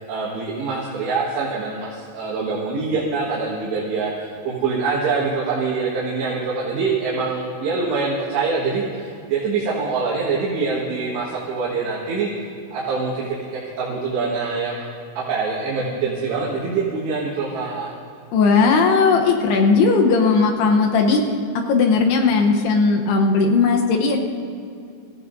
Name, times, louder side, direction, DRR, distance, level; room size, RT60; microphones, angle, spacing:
voice 1, 0.1-12.3 12.7-14.9 15.2-17.9, right 4 dB, 65° right, -6 dB, 3.6 m, -24 dB
voice 2, 18.3-21.2 21.7-24.2, left 4 dB, 75° left, 2 dB, 2.5 m, -17 dB
24.0 x 15.5 x 2.7 m, 2.5 s
omnidirectional pair, 5.7 m